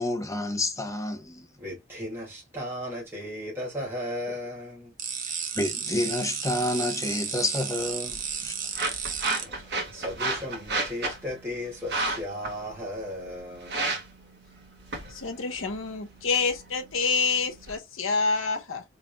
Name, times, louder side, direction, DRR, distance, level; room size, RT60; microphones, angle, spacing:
voice 1, 0.0-1.5 5.5-8.6, left 1 dB, 15° left, 0.9 m, -29 dB
voice 2, 1.6-4.9 9.2-9.6 9.9-13.8, left 1 dB, 10° right, 2.0 m, -35 dB
sound 1, 5.0-9.4, right 7 dB, 40° right, 0.9 m, -33 dB
sound 2, 7.8-17.8, right 2 dB, 60° right, 1.7 m, -34 dB
voice 3, 15.1-18.8, left 4 dB, 85° left, 1.1 m, -27 dB
4.2 x 3.7 x 2.3 m
head